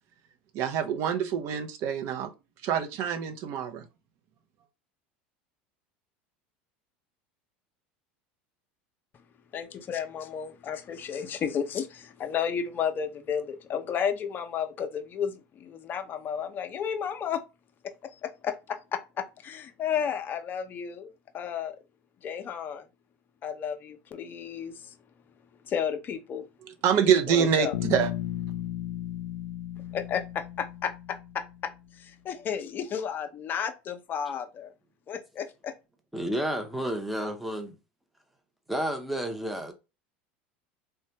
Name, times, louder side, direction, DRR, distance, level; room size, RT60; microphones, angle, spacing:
voice 1, 0.5-2.3 2.6-3.9 26.8-28.1, right 8 dB, 55° right, 0.6 m, -26 dB
voice 2, 9.5-17.4 17.8-21.8 22.2-22.8 23.4-24.9 25.6-26.5 27.3-27.7 29.9-34.7 35.1-35.8, left 7 dB, 40° left, 0.5 m, -33 dB
Bass guitar, 27.7-31.8, left 13 dB, 85° left, 0.4 m, -35 dB
voice 3, 36.1-37.8 38.7-39.7, equal, ahead, 0.7 m, -31 dB
3.1 x 2.2 x 2.8 m
hypercardioid pair, 90°, 5 cm